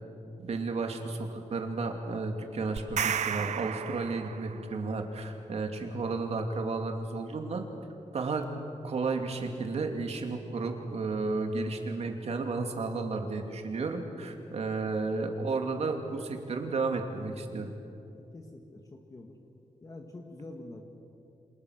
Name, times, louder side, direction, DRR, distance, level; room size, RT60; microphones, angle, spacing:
voice 1, 0.4-7.7 8.1-8.5 8.8-17.7, right 3 dB, 60° right, 4 dB, 2.7 m, -32 dB
sound 1, 2.8-4.7, right 8 dB, 80° right, 0.9 m, -33 dB
voice 2, 18.1-19.4 19.8-20.8, left 2 dB, 30° left, 2 dB, 1.8 m, -46 dB
28.5 x 27.0 x 6.6 m, 2.8 s
wide cardioid pair, 180°, 12 cm